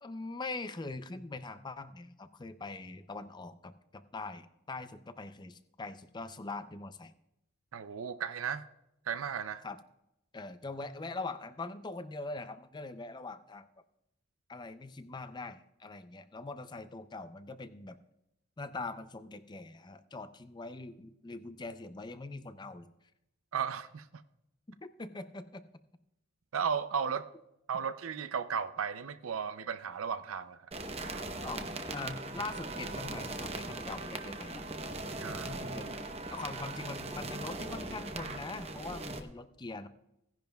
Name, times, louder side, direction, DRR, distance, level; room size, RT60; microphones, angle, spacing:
voice 1, 0.0-7.1 9.6-9.8 10.3-13.7 14.5-18.0 18.6-22.9 24.7-25.6 31.4-34.6 35.3-36.0 36.3-39.9, left 3 dB, 20° left, 12 dB, 0.5 m, -42 dB
voice 2, 7.7-8.6 9.1-9.6 23.5-24.1 26.5-27.3 27.7-30.6 35.2-35.6, right 7 dB, 75° right, 11 dB, 0.5 m, -35 dB
sound 1, 30.7-39.2, right 2 dB, 30° right, 0.8 m, -40 dB
17.0 x 10.5 x 2.3 m, 0.86 s
head